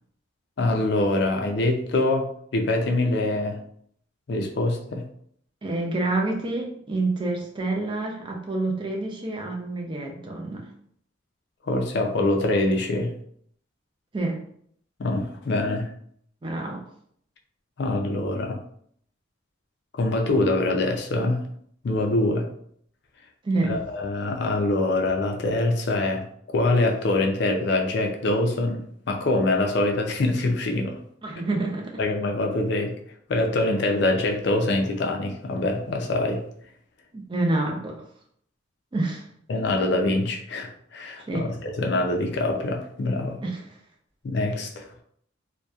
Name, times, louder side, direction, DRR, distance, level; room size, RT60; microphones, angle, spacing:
voice 1, 0.6-3.6 4.3-5.1 11.6-13.1 15.0-15.9 17.8-18.6 19.9-21.5 21.8-22.5 23.7-31.0 32.0-32.9 33.3-36.4 39.5-43.4 44.2-44.9, left 2 dB, 55° left, 3 dB, 0.4 m, -24 dB
voice 2, 5.6-10.7 14.1-14.4 16.4-16.8 23.4-23.8 31.2-32.0 37.1-38.0 38.9-39.3 41.3-41.6 43.4-43.6, right 2 dB, 25° right, 1 dB, 0.4 m, -27 dB
2.7 x 2.1 x 2.3 m, 0.66 s
head